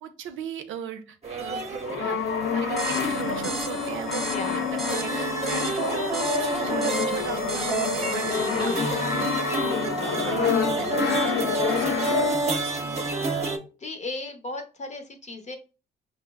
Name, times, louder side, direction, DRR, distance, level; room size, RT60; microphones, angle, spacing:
voice 1, 0.0-2.2 2.5-13.0, right 7 dB, 75° right, 7 dB, 0.6 m, -38 dB
sound 1, 1.2-13.6, right 3 dB, 30° right, 0.8 m, -29 dB
Brass instrument, 1.8-12.6, left 7 dB, 65° left, 0.4 m, -28 dB
sound 2, 2.8-9.9, right 2 dB, ahead, 0.7 m, -37 dB
voice 2, 4.2-4.7 8.6-8.9 11.8-12.2 13.8-15.6, left 2 dB, 35° left, 6 dB, 0.7 m, -37 dB
5.0 x 2.0 x 2.3 m, 0.33 s
supercardioid pair, 60°, 20 cm